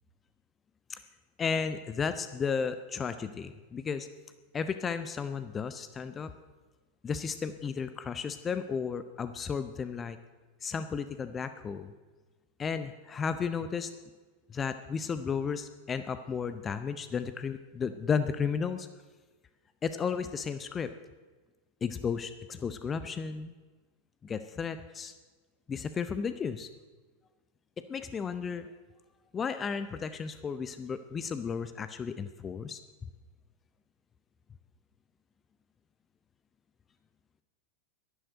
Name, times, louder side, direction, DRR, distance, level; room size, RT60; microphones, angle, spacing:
voice 1, 1.4-4.1 4.5-6.3 7.0-10.2 10.6-11.9 12.6-13.9 14.5-18.9 19.8-20.9 21.8-23.5 24.2-25.1 25.7-26.7 27.8-28.7 29.3-32.8, left 6 dB, 20° left, 11 dB, 0.6 m, -33 dB
11.0 x 11.0 x 7.7 m, 1.3 s
figure-of-eight pair, 90°, 0 cm